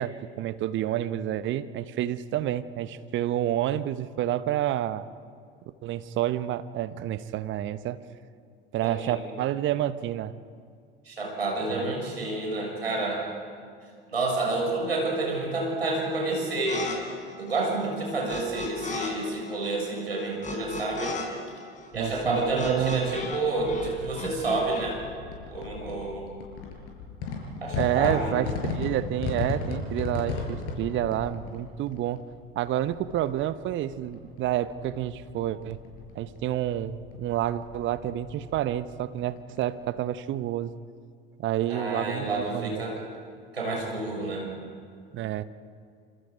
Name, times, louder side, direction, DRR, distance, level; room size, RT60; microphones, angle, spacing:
voice 1, 0.0-5.0 5.8-8.0 8.7-10.3 11.7-11.9 21.9-23.2 27.8-32.2 32.6-35.8 36.1-40.7 41.4-43.0 45.1-45.4, right 12 dB, 40° right, 13 dB, 1.1 m, -29 dB
voice 2, 8.8-9.2 11.0-13.3 14.1-16.9 17.4-21.2 21.9-25.0 25.5-26.3 27.6-28.3 41.7-43.1 43.5-44.5, right 2 dB, 85° right, -1 dB, 6.7 m, -29 dB
sound 1, 16.7-17.0 17.2-19.1 19.4-23.4 23.6-24.8, left 4 dB, 25° left, 5.4 m, -36 dB
sound 2, 21.9-40.1, left 4 dB, 50° left, 6.4 m, -37 dB
27.5 x 26.5 x 5.2 m, 2.2 s
figure-of-eight pair, 75°, 30 cm